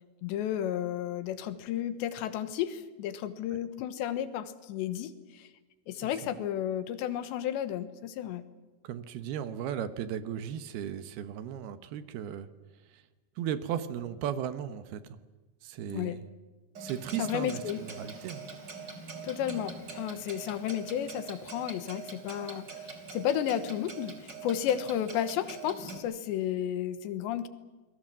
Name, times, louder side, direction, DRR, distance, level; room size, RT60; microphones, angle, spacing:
voice 1, 0.2-5.5 5.9-8.4 15.9-16.2 17.2-17.8 19.2-27.5, left 10 dB, 90° left, 12 dB, 3.5 m, -33 dB
voice 2, 8.8-12.5 13.4-15.0 15.6-16.2 16.8-18.4, right 9 dB, 70° right, 12 dB, 2.8 m, -36 dB
Clock, 16.7-26.0, right 4 dB, 25° right, 3.4 m, -44 dB
29.0 x 21.0 x 7.5 m, 1.2 s
omnidirectional pair, 4.9 m